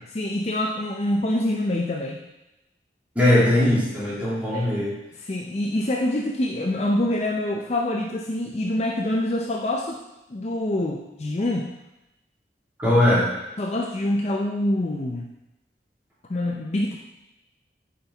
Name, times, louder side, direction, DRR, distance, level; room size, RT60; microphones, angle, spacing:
voice 1, 0.1-2.2 4.5-4.7 5.2-10.0 10.3-11.7 13.6-15.3 16.3-17.0, left 1 dB, 35° left, 1 dB, 0.5 m, -25 dB
voice 2, 3.1-4.9 12.8-13.3, left 1 dB, 10° right, -10 dB, 2.8 m, -19 dB
8.6 x 5.4 x 3.4 m, 0.93 s
head